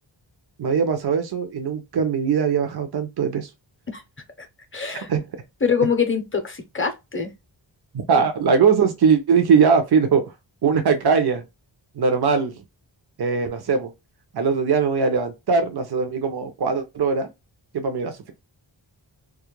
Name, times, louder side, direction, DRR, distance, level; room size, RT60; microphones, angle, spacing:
voice 1, 0.6-3.5 5.1-5.2 7.9-10.3 10.6-11.4 12.0-12.5 13.2-13.9 14.3-17.3 17.7-18.3, right 5 dB, 60° right, 0.6 m, -20 dB
voice 2, 4.7-5.1 5.6-7.3 8.1-8.3, left 6 dB, 30° left, 0.6 m, -24 dB
2.3 x 2.1 x 2.9 m
wide cardioid pair, 80°, 45 cm